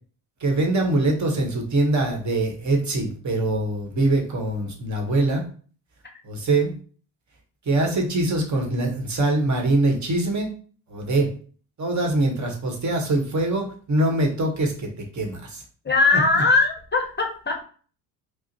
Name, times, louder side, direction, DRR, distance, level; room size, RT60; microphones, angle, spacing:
voice 1, 0.4-5.4 6.2-6.7 7.7-10.5 10.9-11.3 11.8-15.6 16.3-16.4, right 2 dB, 40° right, 2 dB, 1.2 m, -23 dB
voice 2, 15.8-17.6, left 3 dB, 25° left, 3 dB, 0.7 m, -20 dB
4.8 x 2.1 x 2.8 m, 0.43 s
hypercardioid pair, 65°, 47 cm